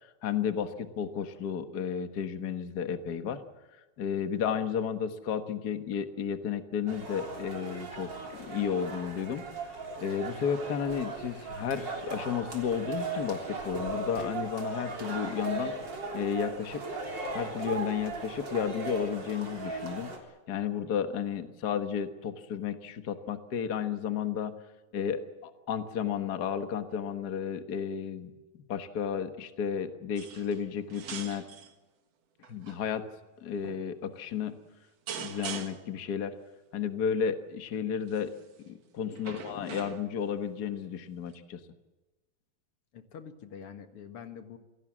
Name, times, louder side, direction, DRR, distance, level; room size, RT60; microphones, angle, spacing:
voice 1, 0.0-3.4 4.0-15.7 16.1-16.8 17.3-20.1 20.5-24.5 24.9-28.3 28.7-31.4 32.5-33.0 33.4-34.5 35.1-36.3 36.7-38.3 38.7-41.6, left 7 dB, 80° left, 9 dB, 0.9 m, -33 dB
sound 1, 6.9-20.2, right 3 dB, 30° right, 3.8 m, -38 dB
sound 2, 30.2-30.6 30.9-31.7 32.4-32.8 33.6-33.9 35.1-36.0 38.1-38.4 39.2-40.3 41.3-41.4, right 7 dB, 55° right, 2.3 m, -42 dB
voice 2, 42.9-44.6, left 7 dB, 50° left, 8 dB, 2.0 m, -46 dB
27.5 x 17.5 x 7.5 m, 1.1 s
omnidirectional pair, 4.0 m